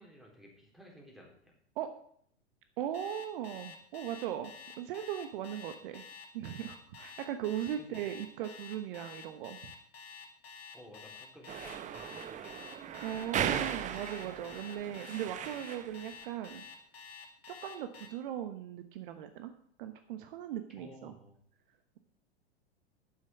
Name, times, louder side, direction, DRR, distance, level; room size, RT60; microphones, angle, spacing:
voice 1, 0.0-1.5 7.8-8.1 10.7-12.7 13.0-13.6 20.8-21.4, equal, ahead, -2 dB, 4.0 m, -54 dB
voice 2, 2.8-6.0 6.3-9.6 13.0-16.6 17.5-19.5 19.8-21.1, right 10 dB, 50° right, 8 dB, 1.1 m, -38 dB
Alarm, 2.9-18.1, left 6 dB, 65° left, 2.2 m, -49 dB
sound 1, 11.5-16.0, right 9 dB, 25° right, 0.8 m, -37 dB
9.7 x 7.6 x 7.5 m, 0.64 s
figure-of-eight pair, 100°, 32 cm